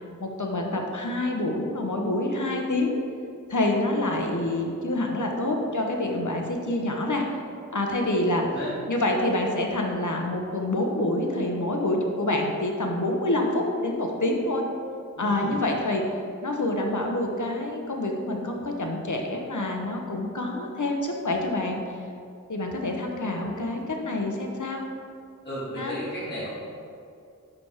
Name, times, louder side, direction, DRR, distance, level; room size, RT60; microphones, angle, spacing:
voice 1, 0.2-2.9 3.5-7.2 7.7-8.4 8.9-14.6 15.2-16.0 16.4-21.8 22.5-24.8 25.8-26.0, left 1 dB, 60° left, 1 dB, 1.0 m, -27 dB
voice 2, 8.4-8.7 15.2-15.6 25.4-26.5, equal, 30° left, -9 dB, 1.7 m, -34 dB
5.8 x 5.1 x 4.8 m, 2.4 s
wide cardioid pair, 45°, 33 cm